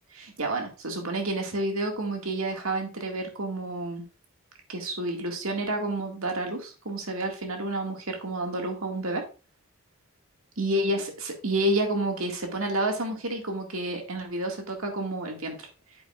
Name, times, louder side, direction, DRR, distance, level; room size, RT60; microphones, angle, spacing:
voice 1, 0.1-4.0 4.7-9.2 10.6-15.6, right 1 dB, 80° right, 3 dB, 2.0 m, -30 dB
9.1 x 7.6 x 2.4 m, 0.33 s
head